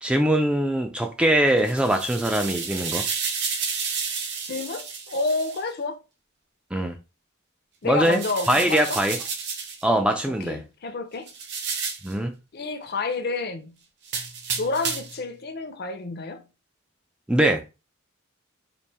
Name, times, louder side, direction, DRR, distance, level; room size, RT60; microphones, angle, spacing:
voice 1, 0.0-3.1 6.7-7.0 7.8-8.2 8.5-9.2 9.8-10.6 12.0-12.3 17.3-17.6, right 1 dB, 5° right, 0.3 m, -22 dB
sound 1, 1.5-5.6 8.0-9.8 11.3-12.1 14.0-15.2, right 5 dB, 55° right, 0.9 m, -31 dB
voice 2, 4.5-6.0 7.8-9.0 10.4-11.3 12.5-13.7 14.6-16.4, left 3 dB, 50° left, 0.6 m, -29 dB
4.1 x 2.5 x 3.3 m
head